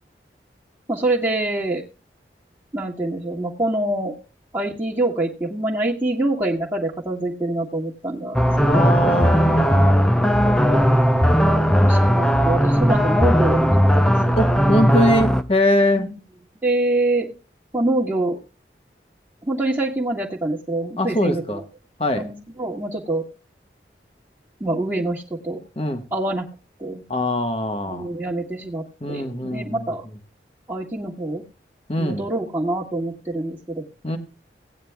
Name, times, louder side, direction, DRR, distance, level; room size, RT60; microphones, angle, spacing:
voice 1, 0.9-1.8 2.7-4.2 4.5-9.1 10.5-10.9 11.4-14.4 15.9-16.1 16.6-17.3 17.7-18.4 19.4-21.6 22.1-23.2 24.6-25.6 26.1-26.4 26.8-27.0 27.9-30.0 30.7-31.4 32.0-33.9, right 2 dB, 15° right, -8 dB, 1.5 m, -25 dB
sound 1, 8.3-15.4, equal, 5° left, 0.5 m, -17 dB
voice 2, 8.7-11.2 14.4-16.1 21.0-21.6 22.0-22.3 25.8-26.0 27.1-28.1 29.0-29.9 31.9-32.2 34.0-34.2, left 1 dB, 35° left, 6 dB, 1.2 m, -23 dB
18.0 x 9.3 x 2.3 m, 0.33 s
head